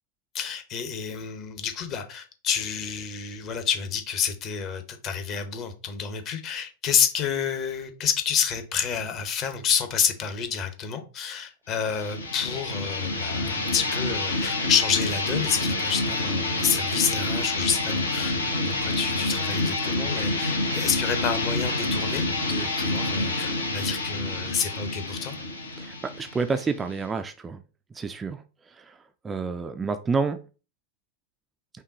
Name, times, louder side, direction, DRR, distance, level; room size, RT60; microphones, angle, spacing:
voice 1, 0.3-25.3, left 7 dB, 35° left, 0.9 m, -29 dB
sound 1, 11.8-27.2, left 2 dB, 70° left, 1.0 m, -28 dB
voice 2, 25.8-27.6 27.9-28.4 28.8-29.0 29.2-30.4, right 4 dB, 15° right, 0.4 m, -29 dB
5.7 x 2.3 x 3.9 m
figure-of-eight pair, 90°, 0 cm